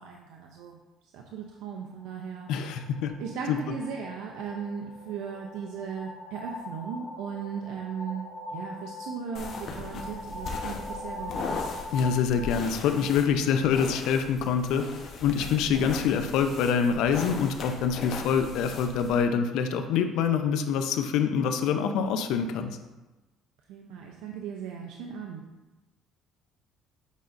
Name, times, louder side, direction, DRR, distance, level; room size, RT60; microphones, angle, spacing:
voice 1, 0.0-2.5 3.2-8.2 8.5-11.6 23.7-25.4, right 6 dB, 80° right, 1 dB, 0.6 m, -37 dB
sound 1, 1.9-13.6, left 2 dB, 5° left, 1.7 m, -42 dB
voice 2, 2.5-3.1 3.5-3.6 11.9-14.9 15.2-22.8, left 7 dB, 75° left, 7 dB, 0.6 m, -25 dB
sound 2, 9.3-19.2, left 4 dB, 55° left, 1.0 m, -39 dB
8.2 x 5.2 x 2.6 m, 1.1 s
cardioid pair, 105°, 0 cm